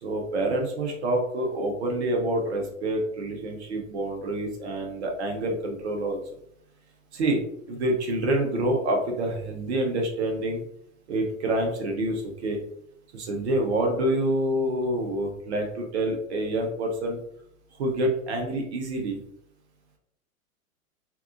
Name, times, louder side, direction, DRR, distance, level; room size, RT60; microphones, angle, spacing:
voice 1, 0.0-6.2 7.1-7.4 7.7-10.6 11.1-12.6 13.1-17.2 17.8-19.2, right 1 dB, 50° right, 1 dB, 0.8 m, -27 dB
2.7 x 2.3 x 2.5 m, 0.71 s
figure-of-eight pair, 100°, 42 cm